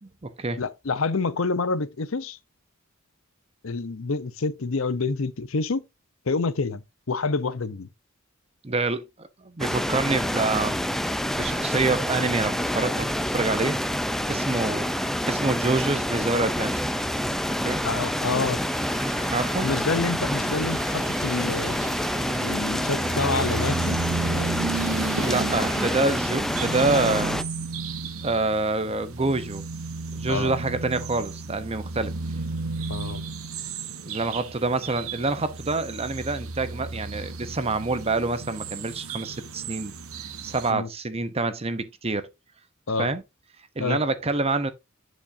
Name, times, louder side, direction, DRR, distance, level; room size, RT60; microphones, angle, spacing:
voice 1, 0.0-0.6 8.6-10.8 11.1-13.8 14.3-14.9 15.3-16.8 17.6-17.8 19.3-19.7 25.2-27.4 28.2-29.6 30.1-32.1 34.0-39.9 40.4-42.3 43.0-43.2 43.8-44.7, right 3 dB, 30° right, 0.8 m, -27 dB
voice 2, 0.6-2.4 3.6-5.8 6.3-7.9 17.8-18.6 19.6-21.8 22.4-23.9 30.3-30.5 32.9-33.2 40.7-40.9 42.9-43.1 43.8-44.0, left 4 dB, 70° left, 0.7 m, -27 dB
sound 1, 9.6-27.4, equal, ahead, 0.5 m, -27 dB
sound 2, 14.7-26.0, right 3 dB, 70° right, 1.1 m, -36 dB
sound 3, 23.0-40.7, right 3 dB, 85° right, 1.2 m, -34 dB
10.5 x 5.2 x 2.7 m
head